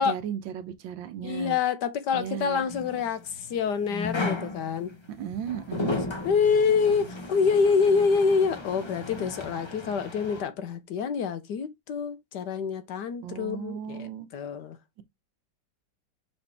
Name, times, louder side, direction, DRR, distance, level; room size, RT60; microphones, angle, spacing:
voice 1, 0.0-1.6 2.1-2.6 5.1-6.0 13.2-14.3, right 9 dB, 75° right, 1.5 m, -35 dB
voice 2, 1.2-4.9 5.9-6.0 6.2-14.8, left 5 dB, 65° left, 1.3 m, -26 dB
sound 1, 2.7-10.4, left 3 dB, 45° left, 0.3 m, -35 dB
6.5 x 4.2 x 3.4 m
omnidirectional pair, 2.1 m